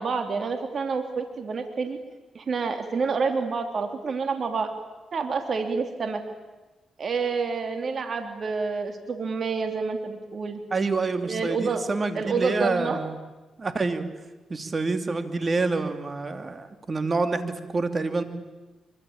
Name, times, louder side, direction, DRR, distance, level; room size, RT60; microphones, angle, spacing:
voice 1, 0.0-2.0 2.3-4.7 5.1-6.2 7.0-10.6 11.2-11.8 12.1-13.0, right 4 dB, 55° right, 6 dB, 3.1 m, -28 dB
voice 2, 10.7-13.2 13.6-14.1 14.5-18.2, right 3 dB, 35° right, 8 dB, 2.8 m, -27 dB
24.5 x 24.5 x 8.9 m, 1.1 s
cardioid pair, 70°, 0 cm